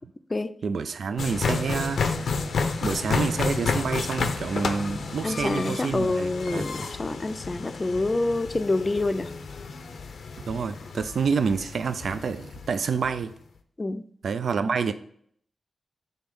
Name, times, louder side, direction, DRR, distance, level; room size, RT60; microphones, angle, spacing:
voice 1, 0.6-2.0 2.8-6.6 10.5-13.3 14.2-14.9, right 5 dB, 80° right, 0.3 m, -28 dB
sound 1, 1.2-13.2, left 4 dB, 85° left, 0.6 m, -31 dB
voice 2, 5.2-9.4 13.8-14.0, left 2 dB, 35° left, 0.4 m, -27 dB
5.3 x 3.4 x 5.2 m
cardioid pair, 70°, 0 cm